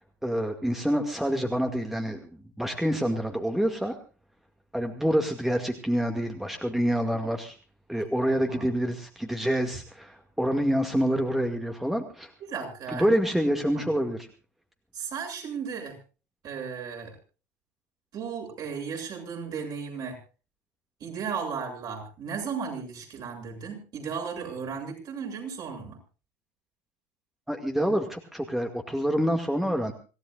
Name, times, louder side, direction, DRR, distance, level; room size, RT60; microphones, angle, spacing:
voice 1, 0.2-2.2 2.6-4.0 4.7-7.6 7.9-12.3 12.9-14.3 27.5-29.9, equal, 5° right, 4 dB, 2.2 m, -27 dB
voice 2, 12.4-13.1 13.7-13.8 14.9-16.0 16.4-17.2 18.1-20.2 21.0-26.0, right 6 dB, 45° right, 2 dB, 7.7 m, -35 dB
26.0 x 16.5 x 2.5 m, 0.35 s
hypercardioid pair, 70°, 9 cm